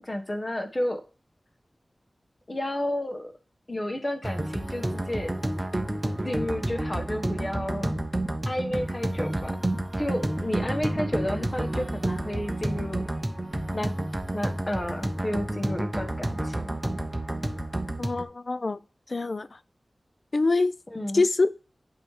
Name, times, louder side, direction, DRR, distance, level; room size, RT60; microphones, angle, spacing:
voice 1, 0.0-1.0 2.5-3.3 3.7-5.3 6.2-8.1 8.4-9.6 10.0-13.0 13.7-13.9 14.3-16.8 20.9-21.2, left 1 dB, 30° left, 1.3 m, -31 dB
sound 1, 4.2-18.2, right 1 dB, 25° right, 1.0 m, -30 dB
voice 2, 18.0-18.8 19.1-19.5 20.3-20.7 21.1-21.6, left 3 dB, 55° left, 0.4 m, -24 dB
8.6 x 3.2 x 4.8 m
wide cardioid pair, 80°, 0 cm